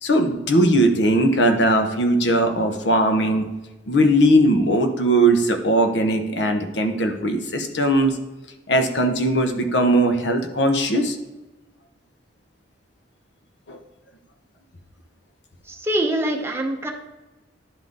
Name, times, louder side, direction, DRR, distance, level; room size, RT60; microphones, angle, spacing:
voice 1, 0.0-3.5 3.9-8.2 8.7-11.2 13.7-13.8, right 1 dB, 75° left, 6 dB, 0.9 m, -19 dB
voice 2, 15.8-16.9, right 1 dB, 15° right, 1 dB, 0.9 m, -23 dB
11.0 x 3.9 x 3.6 m, 1.1 s
head